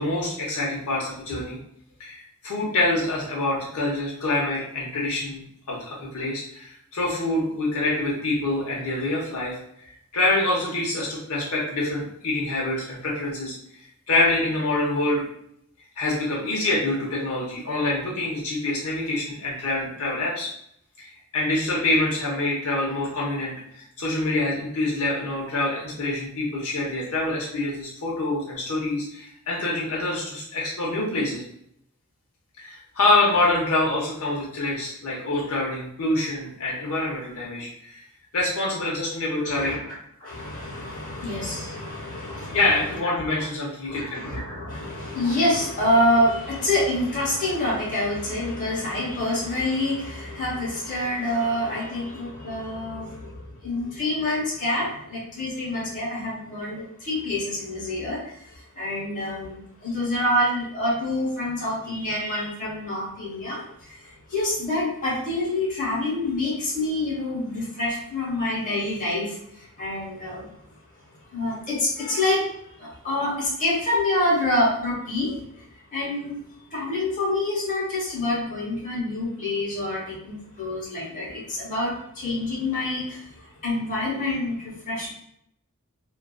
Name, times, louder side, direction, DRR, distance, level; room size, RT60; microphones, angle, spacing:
voice 1, 0.0-1.6 2.0-9.5 9.8-13.5 14.1-15.2 16.0-20.5 21.0-31.4 32.6-38.0 38.3-39.8 42.5-44.4, left 2 dB, 85° left, -4 dB, 0.7 m, -26 dB
voice 2, 39.4-39.8 40.2-42.6 43.0-43.4 43.8-70.5 71.3-72.4 72.8-75.4 75.9-76.3 76.7-83.3 83.6-85.1, left 1 dB, 35° left, -7 dB, 1.0 m, -27 dB
2.4 x 2.3 x 2.3 m, 0.73 s
head